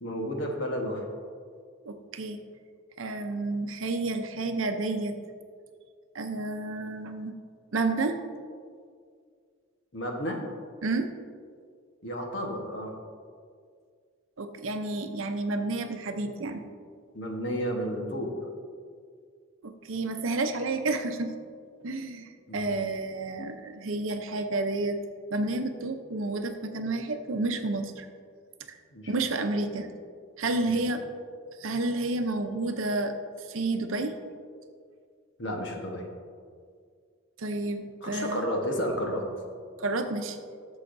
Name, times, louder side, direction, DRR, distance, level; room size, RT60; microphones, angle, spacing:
voice 1, 0.0-1.0 9.9-10.4 12.0-12.9 17.1-18.3 22.5-22.7 28.9-29.1 30.6-30.7 35.4-36.0 38.0-39.2, equal, 60° left, 1 dB, 1.2 m, -32 dB
voice 2, 1.9-2.4 3.0-5.2 6.1-7.4 7.7-8.2 10.8-11.1 14.4-16.6 19.6-21.3 21.8-25.0 25.3-28.1 29.1-29.9 30.4-31.0 31.6-33.2 33.5-34.2 37.4-38.5 39.8-40.4, right 2 dB, 75° right, 6 dB, 0.7 m, -30 dB
13.0 x 7.0 x 2.6 m, 2.1 s
head